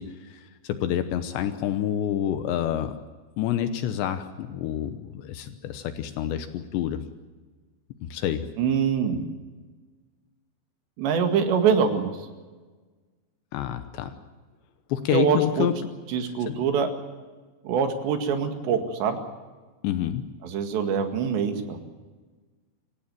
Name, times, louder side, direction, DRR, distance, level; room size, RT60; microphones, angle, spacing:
voice 1, 0.0-3.0 3.4-7.0 8.0-8.4 13.5-14.2 14.9-15.7 16.5-16.6 19.8-20.3, left 10 dB, 80° left, 9 dB, 3.2 m, -28 dB
voice 2, 8.6-9.2 11.0-12.3 15.1-15.7 16.1-16.9 17.6-19.2 20.4-21.8, right 6 dB, 75° right, 5 dB, 4.1 m, -24 dB
26.0 x 16.0 x 9.1 m, 1.4 s
omnidirectional pair, 5.2 m